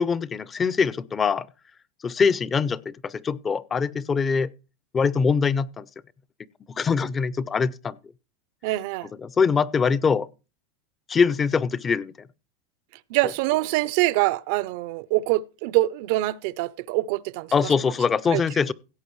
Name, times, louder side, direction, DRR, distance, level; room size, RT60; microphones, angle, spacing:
voice 1, 0.0-1.5 2.0-4.5 4.9-5.9 6.8-8.0 9.1-10.3 11.1-12.3 13.2-13.3 17.5-18.7, left 5 dB, 25° left, 0.5 m, -23 dB
voice 2, 8.6-9.1 13.1-17.5 18.3-18.4, right 18 dB, 65° right, 0.5 m, -24 dB
17.0 x 7.7 x 3.1 m
supercardioid pair, 120°, 0 cm